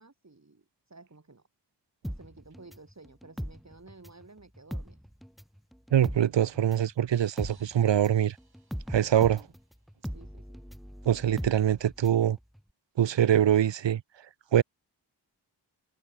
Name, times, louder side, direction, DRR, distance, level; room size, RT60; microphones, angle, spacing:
voice 1, 0.0-1.4 2.1-5.0 9.2-9.5 10.1-10.6, right 3 dB, 40° right, 4.9 m, -53 dB
sound 1, 2.0-4.3 4.6-12.3 12.6-12.7, equal, ahead, 0.7 m, -39 dB
voice 2, 5.9-8.4 8.9-9.4 11.0-12.4 13.0-14.0 14.5-14.6, right 10 dB, 90° right, 0.7 m, -24 dB
sound 2, 7.1-9.9, right 4 dB, 60° right, 7.0 m, -63 dB
wide cardioid pair, 65°, 43 cm